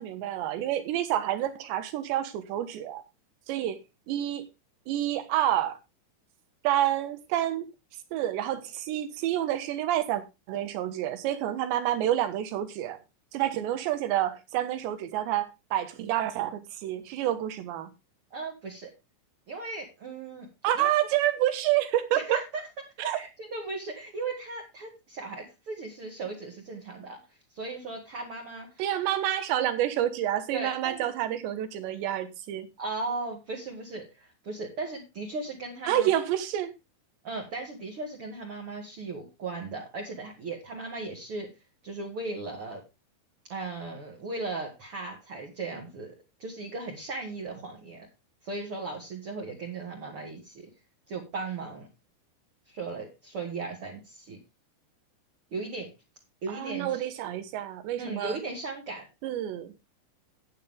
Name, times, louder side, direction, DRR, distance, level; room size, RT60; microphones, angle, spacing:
voice 1, 0.0-3.0 3.5-3.8 4.1-4.5 4.9-5.8 6.6-7.7 8.1-10.2 10.5-13.0 13.3-17.9 20.6-22.4 23.1-23.2 28.8-32.7 35.9-36.7 56.5-58.4 59.2-59.7, right 12 dB, 75° right, 3.3 m, -28 dB
voice 2, 18.3-18.9 19.5-20.5 20.7-20.9 22.1-22.6 23.0-27.2 27.5-28.8 30.5-31.1 32.8-36.1 37.2-41.5 41.8-42.8 43.5-46.1 46.4-48.1 48.4-50.7 51.1-51.9 52.7-54.4 55.5-55.9 56.4-57.0 58.0-59.0, right 3 dB, 45° right, 1.9 m, -37 dB
11.0 x 9.4 x 3.6 m
omnidirectional pair, 5.4 m